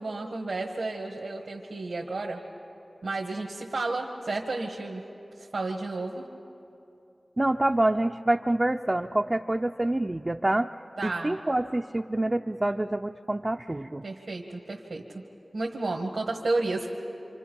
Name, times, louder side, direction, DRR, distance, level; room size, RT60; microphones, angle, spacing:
voice 1, 0.0-2.4 3.0-5.0 5.4-6.3 11.0-11.4 14.0-15.0 15.5-17.0, right 2 dB, 90° right, -1 dB, 1.4 m, -32 dB
voice 2, 7.4-10.7 11.0-14.0, right 1 dB, 30° right, 3 dB, 0.4 m, -26 dB
27.0 x 26.5 x 5.4 m, 2.8 s
wide cardioid pair, 60°, 0 cm